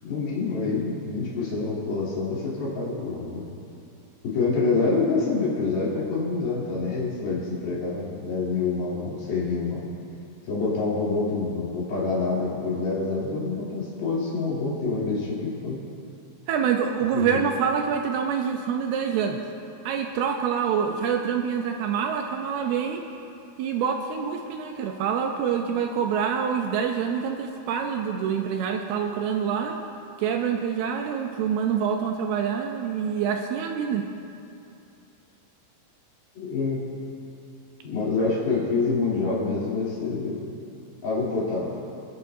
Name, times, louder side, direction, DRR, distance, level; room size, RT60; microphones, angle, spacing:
voice 1, 0.0-3.5 4.2-9.9 10.5-15.8 17.1-17.4 36.4-36.8 37.8-40.5 41.0-41.8, left 4 dB, 60° left, -8 dB, 5.0 m, -27 dB
voice 2, 16.5-19.4 19.9-23.0 23.6-29.8 30.2-34.1, right 7 dB, 80° right, 4 dB, 2.4 m, -26 dB
26.0 x 10.0 x 2.8 m, 2.7 s
omnidirectional pair, 5.1 m